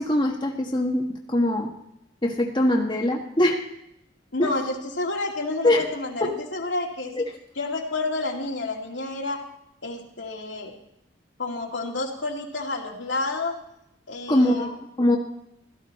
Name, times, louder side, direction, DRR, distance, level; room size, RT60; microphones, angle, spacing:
voice 1, 0.0-1.7 2.2-3.6 4.4-4.5 5.6-5.9 6.2-6.3 7.2-7.3 14.3-15.2, left 1 dB, 25° left, -1 dB, 1.4 m, -22 dB
voice 2, 4.3-7.2 7.6-9.4 9.8-10.7 11.4-13.6 14.1-14.7, left 2 dB, 65° left, 0 dB, 2.5 m, -29 dB
16.5 x 14.0 x 4.2 m, 0.79 s
head